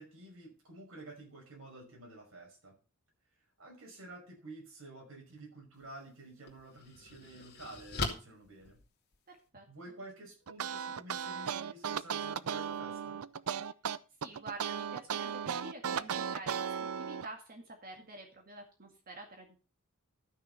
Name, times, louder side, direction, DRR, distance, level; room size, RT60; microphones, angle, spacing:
voice 1, 0.0-2.7 3.6-8.8 9.7-13.2, right 2 dB, 70° right, 1 dB, 5.6 m, -50 dB
sound 1, 5.7-5.9 6.5-9.5, left 3 dB, 50° left, 2.4 m, -40 dB
voice 2, 9.3-9.7 14.2-19.6, right 2 dB, 45° right, 2 dB, 2.1 m, -48 dB
sound 2, 10.5-17.3, right 7 dB, 85° right, 0.6 m, -36 dB
12.5 x 6.4 x 5.6 m, 0.34 s
head